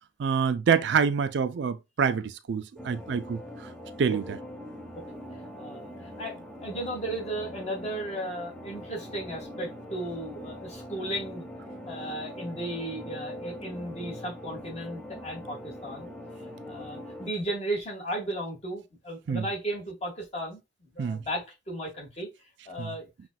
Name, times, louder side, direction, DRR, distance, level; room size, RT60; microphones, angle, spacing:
voice 1, 0.2-3.4 4.0-4.4 19.3-19.4 21.0-21.2 22.8-22.9, right 6 dB, 65° right, 0.4 m, -26 dB
sound 1, 2.8-17.3, left 1 dB, 5° left, 0.6 m, -42 dB
voice 2, 5.6-5.9 6.2-11.5 11.9-16.1 16.7-22.3 22.7-23.1, right 1 dB, 35° left, 1.8 m, -35 dB
5.6 x 2.4 x 2.4 m
head